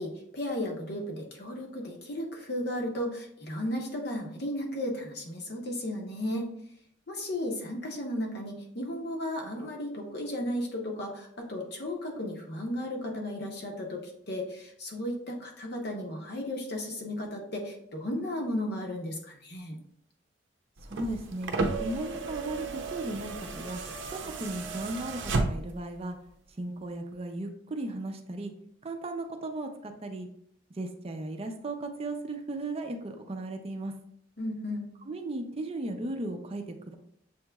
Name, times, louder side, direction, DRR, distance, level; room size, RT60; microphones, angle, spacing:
voice 1, 0.0-6.5 7.1-19.8 34.4-34.8, left 1 dB, 60° left, 1 dB, 0.9 m, -34 dB
voice 2, 20.8-21.5 21.8-23.8 24.1-26.2 26.6-28.5 28.8-30.3 30.7-33.9 35.1-36.9, right 2 dB, 30° right, 5 dB, 0.4 m, -36 dB
sound 1, 20.8-25.9 27.1-27.2, right 3 dB, 80° right, 0.6 m, -33 dB
7.0 x 2.9 x 2.3 m, 0.72 s
head